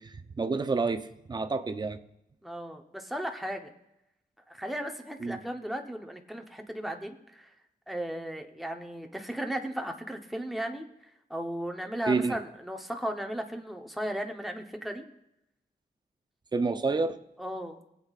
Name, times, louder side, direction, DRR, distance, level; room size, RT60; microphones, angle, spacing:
voice 1, 0.0-2.0 5.2-5.4 12.1-12.4 16.5-17.2, right 4 dB, 30° right, 10 dB, 0.6 m, -29 dB
voice 2, 2.4-3.7 4.5-7.5 7.9-10.8 11.3-15.0 17.4-17.8, equal, ahead, 3 dB, 0.9 m, -36 dB
19.0 x 8.2 x 2.4 m, 0.85 s
wide cardioid pair, 155°, 15 cm